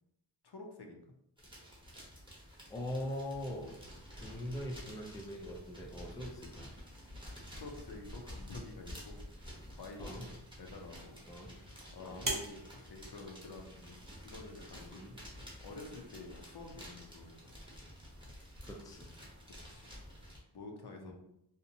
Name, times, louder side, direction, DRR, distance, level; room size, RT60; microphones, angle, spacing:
voice 1, 0.4-1.0 7.5-9.4 9.7-10.3 10.6-11.2 11.9-15.1 15.6-17.5 19.7-19.9 20.5-21.1, left 3 dB, 55° left, 2 dB, 0.5 m, -49 dB
sound 1, 1.4-20.4, equal, 10° right, 0.8 m, -51 dB
voice 2, 2.7-3.8 4.1-6.7 10.0-10.3 11.3-11.5 12.0-12.3 14.9-15.2 18.6-19.1 21.0-21.1, equal, 10° left, -1 dB, 0.4 m, -42 dB
sound 2, 9.9-14.9, right 1 dB, 45° right, 0.7 m, -45 dB
2.7 x 2.1 x 2.6 m, 0.79 s
wide cardioid pair, 75°, 46 cm